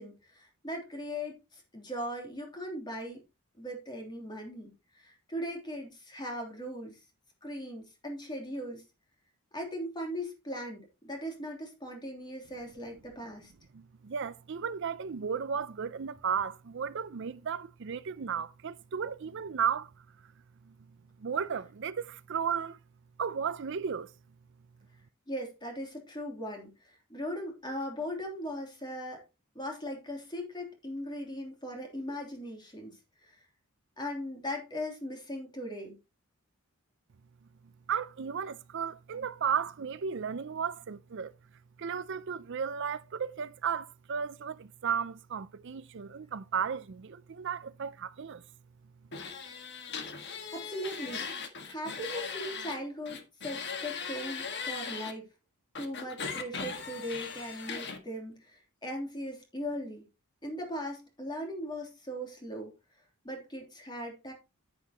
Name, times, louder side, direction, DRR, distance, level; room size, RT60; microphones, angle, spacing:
voice 1, 0.0-3.2 3.6-7.0 7.4-8.8 9.5-13.5 25.3-29.2 29.5-33.4 34.0-36.0 50.5-51.3 51.6-55.3 55.8-60.0 60.4-62.7 63.2-64.3, equal, 20° left, 3.2 m, -39 dB
voice 2, 13.7-19.9 20.7-20.8 21.2-22.8 23.2-24.1 37.9-41.3 41.8-48.4, right 7 dB, 55° right, 0.5 m, -34 dB
sound 1, 49.1-52.8 53.0-55.1 55.7-58.0, left 5 dB, 50° left, 1.7 m, -39 dB
9.8 x 9.6 x 3.0 m
head